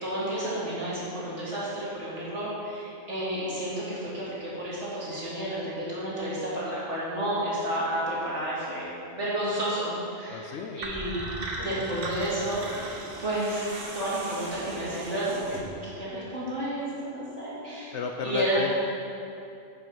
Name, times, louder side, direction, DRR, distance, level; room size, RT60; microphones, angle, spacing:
voice 1, 0.0-8.8 9.1-11.2 11.6-12.6 13.2-13.7 13.9-18.0 18.2-18.6, right 1 dB, 70° right, -8 dB, 2.7 m, -31 dB
voice 2, 10.3-10.8 11.6-12.0 17.9-18.7, left 6 dB, 70° left, 3 dB, 0.9 m, -34 dB
sound 1, 10.8-13.8, right 2 dB, 50° right, 1.1 m, -37 dB
sound 2, 12.2-15.8, right 2 dB, 85° right, 1.6 m, -42 dB
10.0 x 5.8 x 5.4 m, 2.6 s
omnidirectional pair, 1.3 m